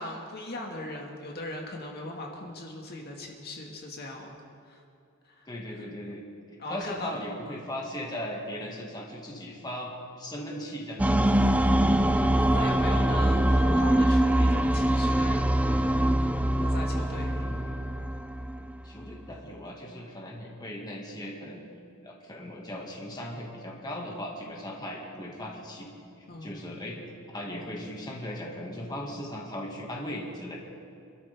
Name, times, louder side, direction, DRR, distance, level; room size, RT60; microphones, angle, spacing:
voice 1, 0.0-4.4 4.7-4.8 5.3-5.5 5.7-5.9 6.6-7.6 11.6-12.2 12.5-15.7 16.6-17.5 26.3-26.6, left 1 dB, 45° left, 0 dB, 1.8 m, -39 dB
voice 2, 5.5-6.2 6.7-11.2 16.9-17.6 18.8-21.7 22.0-25.9 26.4-27.0 27.3-30.6, left 1 dB, 20° left, -2 dB, 1.8 m, -38 dB
sound 1, 11.0-19.1, right 1 dB, 5° right, 0.4 m, -24 dB
26.0 x 13.0 x 3.5 m, 2.5 s
head